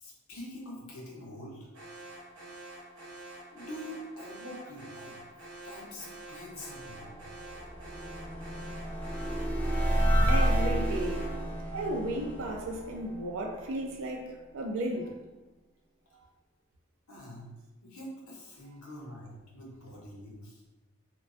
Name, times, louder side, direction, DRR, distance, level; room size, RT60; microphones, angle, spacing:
voice 1, 0.0-1.7 3.5-5.1 5.6-7.3 17.1-17.4 17.8-20.6, left 1 dB, 85° left, -3 dB, 0.7 m, -45 dB
Alarm, 1.7-11.4, right 2 dB, 85° right, 0.9 m, -47 dB
sound 1, 6.7-13.9, equal, 10° left, 0.3 m, -30 dB
voice 2, 10.3-11.3 11.7-15.2, right 1 dB, 65° right, 1 dB, 0.4 m, -34 dB
2.4 x 2.2 x 2.4 m, 1.1 s
head